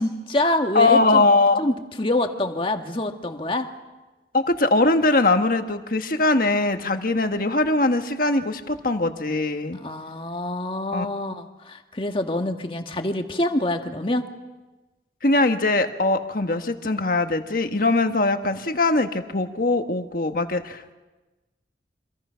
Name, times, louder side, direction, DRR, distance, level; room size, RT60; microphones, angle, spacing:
voice 1, 0.0-1.2 1.6-3.7 9.7-14.3, left 1 dB, 30° left, 5 dB, 1.7 m, -26 dB
voice 2, 0.7-1.6 4.3-9.8 10.9-11.1 15.2-20.9, left 2 dB, 50° left, 6 dB, 1.5 m, -21 dB
28.0 x 25.5 x 5.8 m, 1.2 s
head